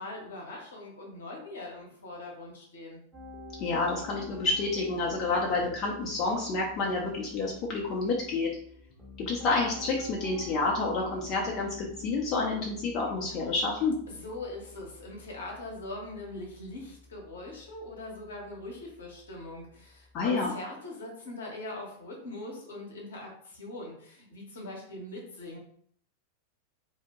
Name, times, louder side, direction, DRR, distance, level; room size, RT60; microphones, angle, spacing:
voice 1, 0.0-3.0 14.1-25.6, left 2 dB, 65° left, -1 dB, 0.8 m, -41 dB
Piano, 3.1-20.2, left 1 dB, 10° right, 0.8 m, -48 dB
voice 2, 3.6-8.5 9.2-13.9 20.1-20.5, left 3 dB, 35° left, -2 dB, 0.5 m, -29 dB
2.6 x 2.1 x 2.9 m, 0.65 s
figure-of-eight pair, 90°, 0 cm